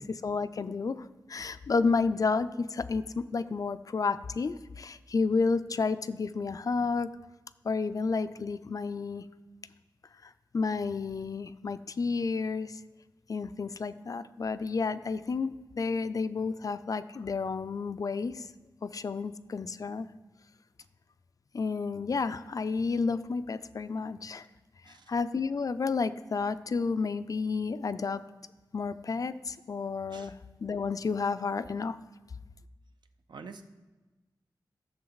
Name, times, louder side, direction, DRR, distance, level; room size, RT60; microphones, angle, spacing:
voice 1, 0.0-7.1 7.6-9.2 10.2-12.8 13.3-18.5 18.8-20.1 21.5-24.5 24.9-28.2 28.7-32.0, left 4 dB, 50° left, 13 dB, 0.4 m, -31 dB
voice 2, 33.3-33.6, right 5 dB, 70° right, 7 dB, 0.7 m, -46 dB
13.5 x 6.8 x 4.0 m, 1.2 s
wide cardioid pair, 100°, 8 cm